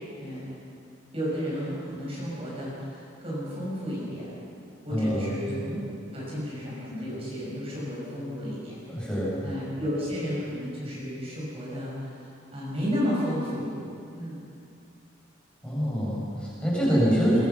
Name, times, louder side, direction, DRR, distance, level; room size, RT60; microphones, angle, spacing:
voice 1, 0.2-0.5 1.1-4.3 4.8-5.8 6.0-9.1 9.4-13.7 14.1-14.4, equal, 30° right, -6 dB, 6.9 m, -32 dB
voice 2, 4.9-5.3 8.9-9.3 15.6-17.4, equal, 5° left, -7 dB, 7.7 m, -25 dB
24.0 x 23.0 x 6.1 m, 2.5 s
head